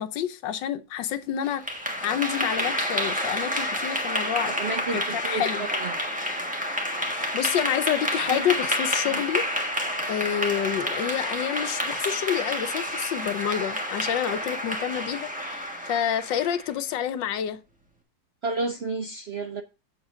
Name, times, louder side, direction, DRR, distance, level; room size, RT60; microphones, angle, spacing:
voice 1, 0.0-1.6 2.0-4.5 4.9-5.6 7.3-9.4 10.1-17.6, left 10 dB, 85° left, 1.5 m, -28 dB
Clapping / Applause, 1.4-16.7, equal, 5° right, 1.2 m, -29 dB
voice 2, 4.5-5.5 5.7-6.0 8.3-8.4 9.1-9.2 18.4-19.6, right 3 dB, 60° right, 0.7 m, -31 dB
8.0 x 7.2 x 3.8 m
omnidirectional pair, 2.0 m